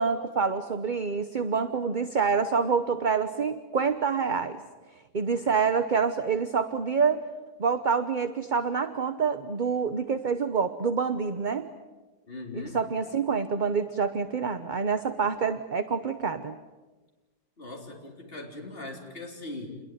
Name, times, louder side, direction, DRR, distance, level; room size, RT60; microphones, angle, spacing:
voice 1, 0.0-4.6 5.1-7.3 7.6-11.7 12.5-16.6, right 5 dB, 35° right, 10 dB, 1.0 m, -27 dB
voice 2, 12.3-12.8 17.6-19.8, left 2 dB, 35° left, 0 dB, 4.2 m, -40 dB
28.5 x 22.0 x 9.4 m, 1.2 s
omnidirectional pair, 1.7 m